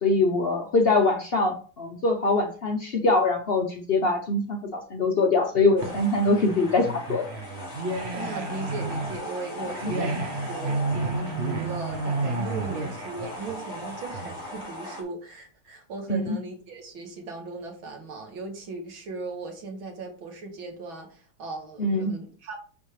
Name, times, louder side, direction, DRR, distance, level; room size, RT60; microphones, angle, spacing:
voice 1, 0.0-7.3 9.8-9.9 16.1-16.4 21.8-22.1, left 2 dB, 75° left, 3 dB, 0.5 m, -23 dB
sound 1, 5.5-14.6, right 3 dB, 40° right, 1.0 m, -31 dB
sound 2, 5.8-15.0, left 1 dB, 30° left, 2.9 m, -39 dB
voice 2, 8.1-22.6, right 3 dB, 70° right, 2 dB, 2.6 m, -38 dB
7.2 x 7.2 x 3.3 m, 0.39 s
omnidirectional pair, 2.3 m